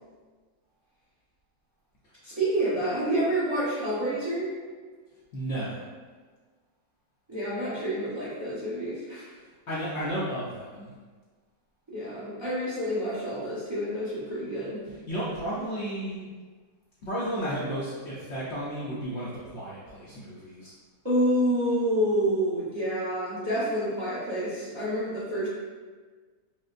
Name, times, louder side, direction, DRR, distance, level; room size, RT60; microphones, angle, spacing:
voice 1, 2.2-4.5 7.3-9.3 11.9-14.8 21.0-25.5, right 1 dB, 25° right, -10 dB, 0.7 m, -28 dB
voice 2, 5.3-5.8 9.7-10.9 15.1-16.3 17.0-20.7, right 1 dB, 60° left, -7 dB, 0.8 m, -33 dB
4.6 x 2.0 x 2.4 m, 1.4 s
omnidirectional pair, 1.6 m